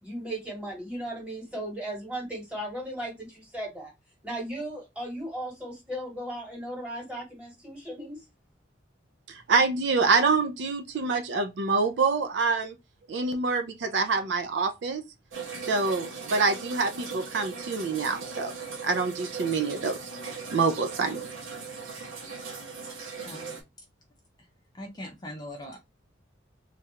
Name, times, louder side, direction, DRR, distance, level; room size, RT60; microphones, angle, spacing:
voice 1, 0.0-3.9 4.2-8.2, right 1 dB, 5° right, 1.2 m, -36 dB
voice 2, 9.3-12.7 13.1-15.0 15.7-18.5 18.8-20.0 20.5-21.3, right 4 dB, 60° right, 0.4 m, -26 dB
sound 1, 15.3-23.6, right 5 dB, 85° right, 0.9 m, -39 dB
voice 3, 24.7-25.8, left 1 dB, 20° left, 0.5 m, -40 dB
3.2 x 2.4 x 2.8 m
head